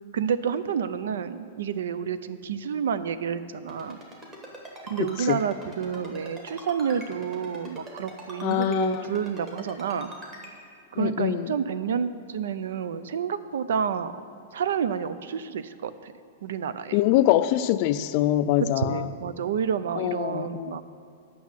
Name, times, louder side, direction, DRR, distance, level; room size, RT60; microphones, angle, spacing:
voice 1, 0.1-4.0 4.8-10.1 10.9-14.1 14.5-16.1 16.4-17.0 18.8-20.8, right 7 dB, 75° right, 14 dB, 0.5 m, -29 dB
Ringtone, 3.7-10.5, right 1 dB, 20° right, 1.4 m, -42 dB
voice 2, 5.0-5.4 8.4-9.1 11.0-11.5 16.9-19.1 20.0-20.8, left 13 dB, 35° left, 12 dB, 0.3 m, -24 dB
9.2 x 6.2 x 7.4 m, 2.4 s
supercardioid pair, 170°, 0 cm